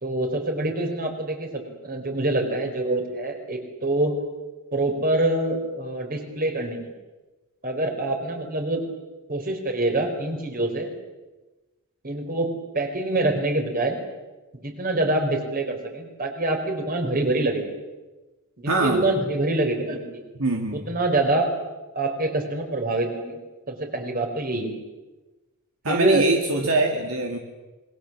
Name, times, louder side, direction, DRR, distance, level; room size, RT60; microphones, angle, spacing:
voice 1, 0.0-4.1 4.7-6.9 7.6-8.8 9.3-10.9 12.0-14.0 14.5-17.6 18.6-20.2 20.7-21.5 21.9-23.3 23.7-24.7 25.8-26.3, right 2 dB, 45° right, 4 dB, 4.8 m, -25 dB
voice 2, 18.7-19.0 20.4-20.8 25.8-27.4, right 2 dB, 70° right, 2 dB, 2.5 m, -23 dB
27.0 x 22.0 x 7.6 m, 1.1 s
head